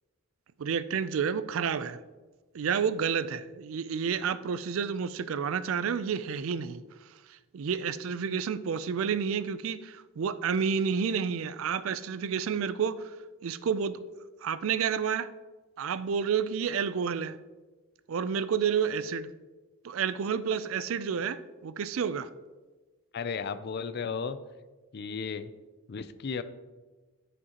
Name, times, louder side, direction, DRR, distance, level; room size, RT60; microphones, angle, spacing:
voice 1, 0.6-2.0 2.5-6.8 7.5-13.2 13.4-14.0 14.4-15.3 15.8-17.4 18.1-19.3 19.8-22.3, right 6 dB, 70° right, 0.4 m, -30 dB
voice 2, 23.1-24.4 24.9-25.5 25.9-26.4, left 5 dB, 50° left, 0.4 m, -34 dB
13.5 x 5.2 x 2.9 m
head